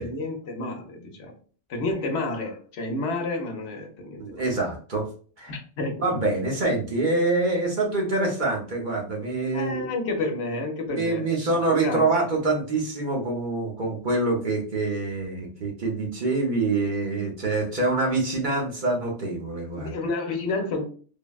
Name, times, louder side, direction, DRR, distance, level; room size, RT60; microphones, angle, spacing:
voice 1, 0.0-1.3 1.7-4.4 5.5-6.0 9.5-12.0 19.8-20.8, left 2 dB, 70° left, 3 dB, 0.9 m, -30 dB
voice 2, 4.2-5.0 5.4-5.5 6.0-9.9 10.9-19.9, right 2 dB, 50° right, -1 dB, 0.8 m, -25 dB
3.3 x 2.1 x 2.3 m, 0.41 s
omnidirectional pair, 1.2 m